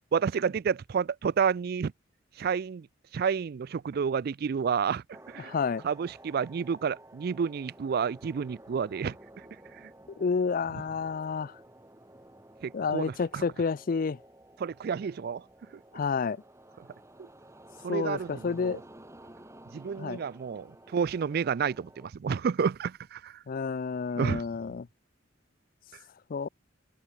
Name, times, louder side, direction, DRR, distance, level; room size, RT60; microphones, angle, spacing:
voice 1, 0.1-1.9 2.4-2.9 3.1-5.0 5.3-5.5 5.8-9.2 12.6-13.4 14.6-15.4 17.8-18.8 19.7-20.7 20.9-23.3 24.2-24.4, right 6 dB, 55° right, 0.4 m, -30 dB
sound 1, 5.1-22.1, right 1 dB, 15° right, 6.3 m, -53 dB
voice 2, 5.4-5.8 10.2-11.6 12.7-14.2 15.9-16.4 17.9-18.8 20.0-20.2 23.5-24.9 26.3-26.5, left 5 dB, 45° left, 0.4 m, -30 dB
open air
head